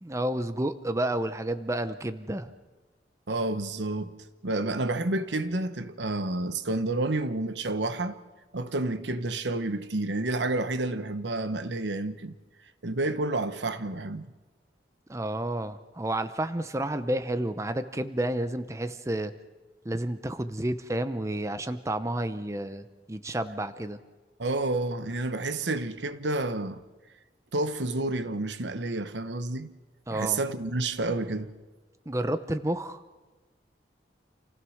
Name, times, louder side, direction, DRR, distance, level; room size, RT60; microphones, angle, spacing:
voice 1, 0.0-2.5 15.1-19.3 19.8-24.0 30.1-30.4 32.1-33.0, right 1 dB, 15° right, 0.7 m, -30 dB
voice 2, 3.3-4.1 4.4-8.2 8.5-12.3 12.8-14.3 24.4-26.8 27.5-29.7 30.1-31.5, right 2 dB, 80° right, 1.1 m, -29 dB
28.5 x 16.0 x 6.4 m
head